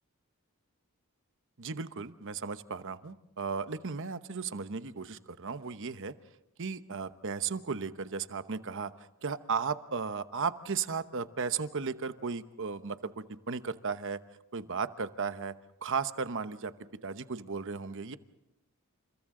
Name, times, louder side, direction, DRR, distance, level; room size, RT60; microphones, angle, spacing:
voice 1, 1.6-6.1 6.6-8.9 9.2-14.2 14.5-15.5 15.8-16.7 17.0-18.2, right 5 dB, 60° right, 11 dB, 0.9 m, -35 dB
29.5 x 28.5 x 3.8 m, 0.89 s
head